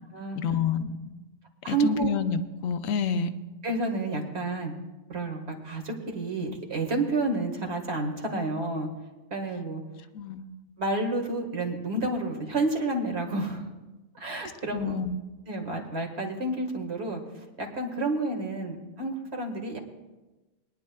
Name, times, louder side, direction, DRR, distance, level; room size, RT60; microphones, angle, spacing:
voice 1, 0.4-1.1 1.7-3.3 10.1-10.5 14.7-15.2, left 6 dB, 65° left, 10 dB, 1.0 m, -28 dB
voice 2, 1.6-2.1 3.6-4.7 5.1-8.9 9.3-9.8 10.8-13.7 14.1-14.9 15.5-19.8, right 2 dB, 45° right, 2 dB, 1.9 m, -30 dB
22.5 x 10.5 x 2.3 m, 1.1 s
omnidirectional pair, 1.6 m